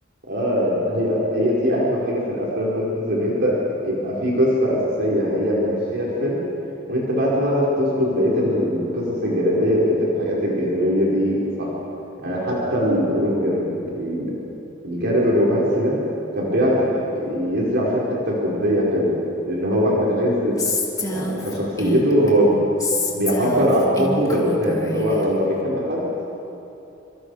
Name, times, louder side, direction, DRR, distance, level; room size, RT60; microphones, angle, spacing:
voice 1, 0.3-3.6 3.8-6.4 6.9-11.7 12.2-14.3 14.8-16.0 16.3-16.9 17.1-19.2 19.5-20.6 21.1-22.5 23.1-26.1, equal, 60° right, -5 dB, 5.1 m, -21 dB
Female speech woman speaking, 20.6-22.3 22.8-25.3, left 2 dB, 20° left, 2.4 m, -27 dB
28.0 x 26.0 x 5.0 m, 2.9 s
head